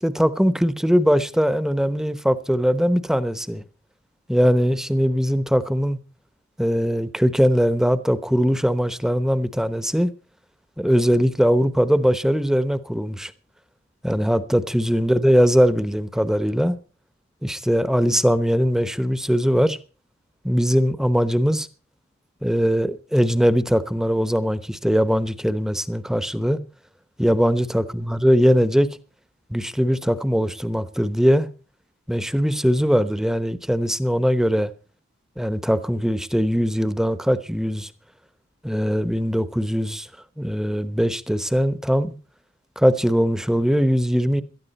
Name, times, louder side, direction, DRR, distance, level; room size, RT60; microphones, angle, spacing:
voice 1, 0.0-3.6 4.3-6.0 6.6-10.1 10.8-13.3 14.0-16.8 17.4-19.8 20.4-21.7 22.4-26.6 27.2-28.9 29.5-31.5 32.1-34.7 35.4-37.9 38.6-40.1 40.4-42.1 42.8-44.4, equal, 5° right, 0.9 m, -20 dB
18.0 x 13.0 x 4.2 m
head